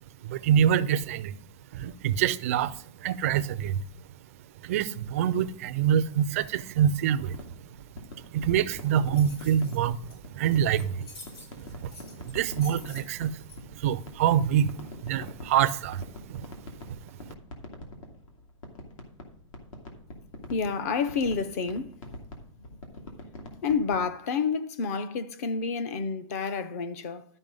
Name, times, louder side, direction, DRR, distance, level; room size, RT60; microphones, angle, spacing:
voice 1, 0.2-1.3 1.7-3.8 4.6-7.7 8.1-11.1 11.5-16.7 17.2-17.3, right 9 dB, 25° right, 0.3 m, -26 dB
sound 1, 7.2-9.8 10.2-11.0 11.3-13.8 14.1-24.1, left 2 dB, 85° left, 2.7 m, -44 dB
sound 2, 8.7-13.5, left 2 dB, 50° left, 5.1 m, -48 dB
voice 2, 20.5-21.9 23.6-27.2, left 5 dB, 30° left, 0.5 m, -29 dB
12.5 x 5.5 x 5.3 m
supercardioid pair, 180°, 17 cm